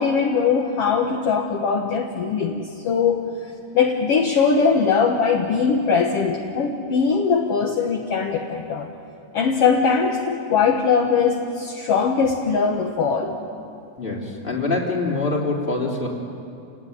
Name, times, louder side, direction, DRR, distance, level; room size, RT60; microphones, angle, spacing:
voice 1, 0.0-3.3 3.7-8.9 9.3-13.3, left 5 dB, 55° left, 2 dB, 2.1 m, -21 dB
voice 2, 14.0-16.1, left 3 dB, 15° left, -1 dB, 3.6 m, -24 dB
29.5 x 18.5 x 9.9 m, 2.6 s
omnidirectional pair, 3.4 m